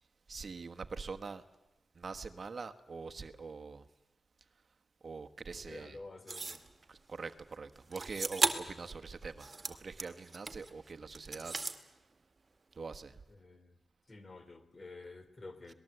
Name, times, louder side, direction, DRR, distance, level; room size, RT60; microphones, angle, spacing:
voice 1, 0.3-1.4 1.9-3.9 5.0-6.0 6.9-11.5 11.8-12.0 12.7-13.2, right 4 dB, 50° right, 1.3 m, -44 dB
voice 2, 5.5-6.6 8.8-9.0 13.3-13.8 14.1-15.7, left 3 dB, 35° left, 3.0 m, -50 dB
sound 1, 6.3-6.7 7.9-8.8 9.2-10.7 11.1-11.8, right 3 dB, 35° right, 2.0 m, -35 dB
26.0 x 19.5 x 8.0 m
cardioid pair, 75°, 0 cm